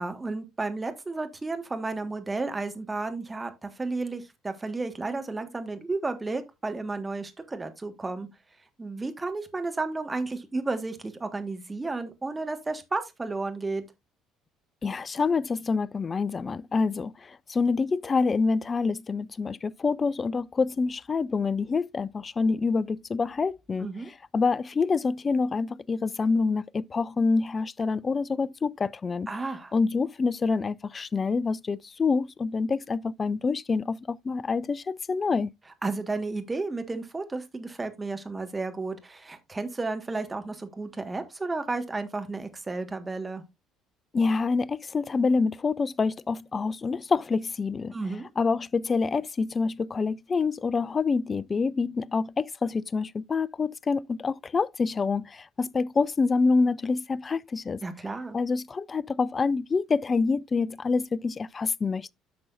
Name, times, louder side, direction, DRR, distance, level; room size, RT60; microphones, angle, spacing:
voice 1, 0.0-8.3 8.8-13.8 23.8-24.1 29.3-29.7 35.8-43.4 47.9-48.3 57.8-58.4, right 3 dB, 20° right, 1.6 m, -32 dB
voice 2, 14.8-17.1 17.5-23.9 24.3-29.3 29.7-35.5 44.1-48.0 48.4-57.8 58.3-62.1, left 4 dB, 30° left, 0.4 m, -26 dB
10.0 x 6.1 x 2.6 m
hypercardioid pair, 55°, 0 cm